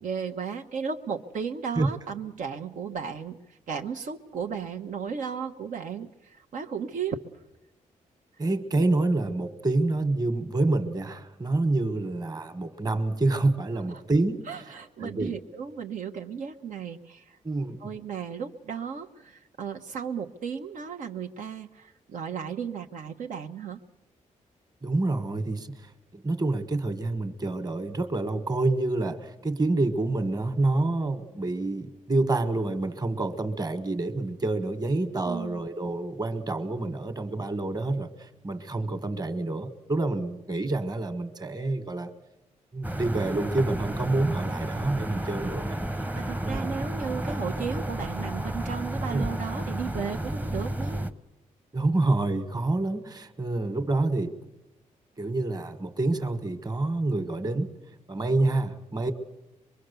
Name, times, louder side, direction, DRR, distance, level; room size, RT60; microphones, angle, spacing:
voice 1, 0.0-7.2 13.9-14.0 14.5-17.4 17.8-23.8 35.2-35.7 46.1-51.0, right 6 dB, 80° right, 3 dB, 1.1 m, -35 dB
voice 2, 8.4-14.5 15.0-15.4 17.4-17.9 24.8-42.1 42.7-45.8 46.4-46.7 49.1-49.2 51.7-54.4 55.2-57.7 58.1-59.1, right 2 dB, 30° right, 10 dB, 1.5 m, -27 dB
sound 1, 42.8-51.1, right 1 dB, 10° right, 0.9 m, -32 dB
24.0 x 22.5 x 6.9 m, 0.96 s
cardioid pair, 100°, 14 cm